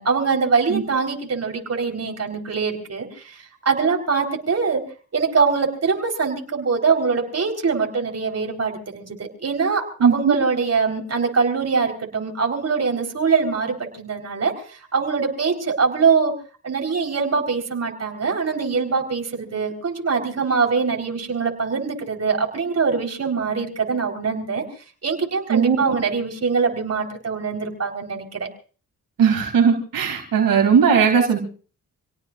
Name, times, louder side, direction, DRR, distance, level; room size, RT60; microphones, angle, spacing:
voice 1, 0.0-3.4 3.6-4.8 5.1-16.3 16.6-24.6 25.0-28.5, right 5 dB, 50° right, 2 dB, 4.1 m, -23 dB
voice 2, 10.0-10.3 25.5-25.8 29.2-31.4, right 6 dB, 80° right, 2 dB, 2.9 m, -17 dB
27.5 x 18.0 x 2.5 m, 0.39 s
cardioid pair, 65°, 33 cm